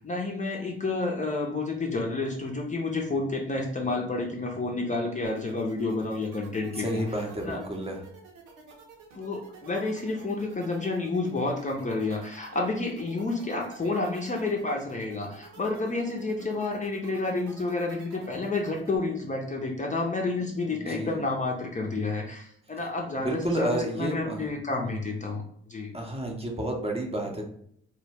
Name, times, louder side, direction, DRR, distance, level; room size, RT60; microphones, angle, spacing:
voice 1, 0.0-7.0 7.5-7.6 9.1-25.4 25.7-25.9, left 3 dB, 20° left, 0 dB, 0.6 m, -30 dB
sound 1, 5.2-19.0, right 5 dB, 65° right, 0.8 m, -50 dB
voice 2, 6.8-8.0 20.7-21.2 23.2-24.5 25.9-27.4, right 1 dB, 20° right, 1 dB, 0.7 m, -31 dB
2.2 x 2.0 x 3.3 m, 0.66 s
hypercardioid pair, 50°, 33 cm